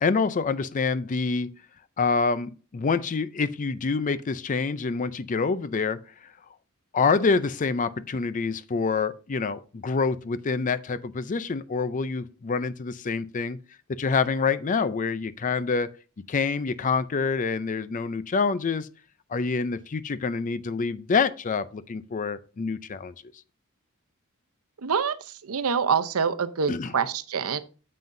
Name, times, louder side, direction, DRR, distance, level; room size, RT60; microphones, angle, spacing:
voice 1, 0.0-1.5 2.0-6.3 6.9-13.6 13.9-15.9 16.3-18.9 19.3-23.1 26.7-26.9, left 4 dB, 35° left, 0.4 m, -26 dB
voice 2, 24.8-25.2 25.4-27.6, right 6 dB, 90° right, 0.7 m, -25 dB
9.1 x 7.6 x 2.6 m
head